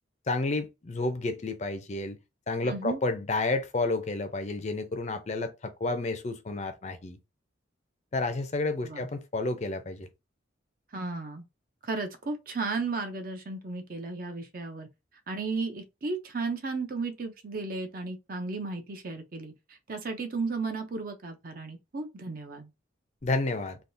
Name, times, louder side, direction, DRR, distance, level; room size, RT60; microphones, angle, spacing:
voice 1, 0.3-2.2 2.5-7.2 8.1-10.1 23.2-23.8, left 2 dB, 35° left, 0.5 m, -30 dB
voice 2, 2.6-3.0 8.8-9.1 10.9-11.4 11.8-14.9 15.3-22.7, right 3 dB, 50° right, 0.6 m, -34 dB
3.5 x 2.3 x 2.6 m
head